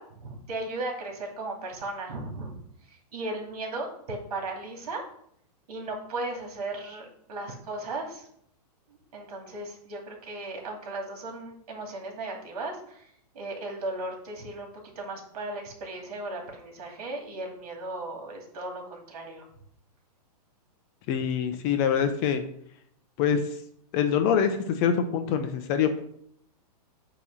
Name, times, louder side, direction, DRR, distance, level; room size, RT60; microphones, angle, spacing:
voice 1, 0.0-2.6 2.8-5.0 5.7-8.3 8.9-14.7 14.9-19.4, right 2 dB, 65° right, 1 dB, 2.6 m, -36 dB
voice 2, 21.1-22.4 23.2-23.6 23.9-26.0, left 7 dB, 25° left, 8 dB, 0.5 m, -25 dB
8.5 x 3.0 x 6.1 m, 0.68 s
hypercardioid pair, 160°, 20 cm